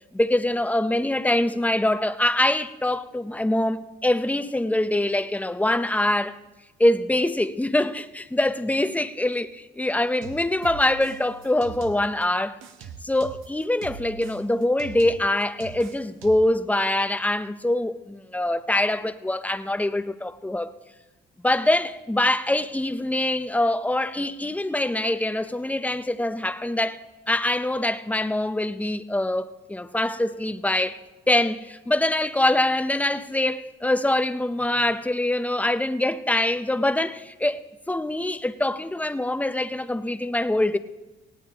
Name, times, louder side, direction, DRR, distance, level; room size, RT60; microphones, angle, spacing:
voice 1, 0.1-6.4 6.8-12.6 13.0-20.7 21.4-31.0 31.3-40.8, left 1 dB, 5° left, 0.7 m, -24 dB
sound 1, 10.2-12.2 12.6-16.6, right 6 dB, 90° right, 0.9 m, -42 dB
18.5 x 17.0 x 3.0 m
cardioid pair, 90°, 20 cm